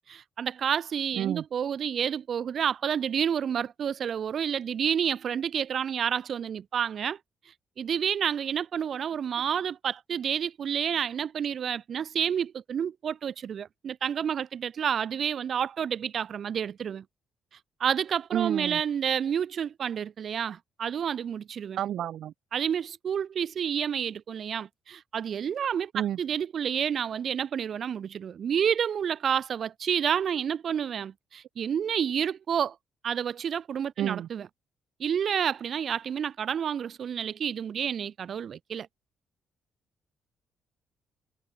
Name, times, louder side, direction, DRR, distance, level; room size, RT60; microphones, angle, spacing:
voice 1, 0.0-7.2 7.8-17.0 17.8-21.8 22.5-32.8 33.0-34.5 35.0-38.9, right 8 dB, 55° right, 2.3 m, -29 dB
voice 2, 18.3-18.8 21.8-22.3 25.9-26.2 34.0-34.3, right 11 dB, 70° right, 1.5 m, -30 dB
cardioid pair, 90°, 0 cm